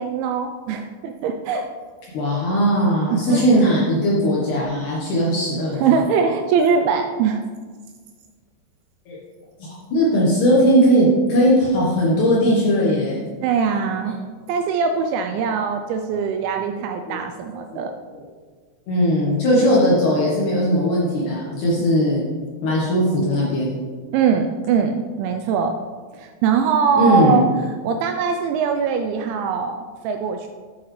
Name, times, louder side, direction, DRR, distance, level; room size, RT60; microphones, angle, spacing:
voice 1, 0.0-1.6 3.1-3.4 5.8-7.4 13.4-14.2 14.5-17.9 24.1-25.7 26.1-27.5 27.8-29.8 30.0-30.5, right 6 dB, 85° right, 5 dB, 2.6 m, -21 dB
voice 2, 2.1-6.0 9.1-9.2 9.6-13.2 14.0-14.1 17.1-17.2 18.1-18.2 18.9-22.2 22.6-23.8 27.0-27.4, equal, 90° left, -5 dB, 1.7 m, -18 dB
8.6 x 8.2 x 3.2 m, 1.5 s
omnidirectional pair, 5.6 m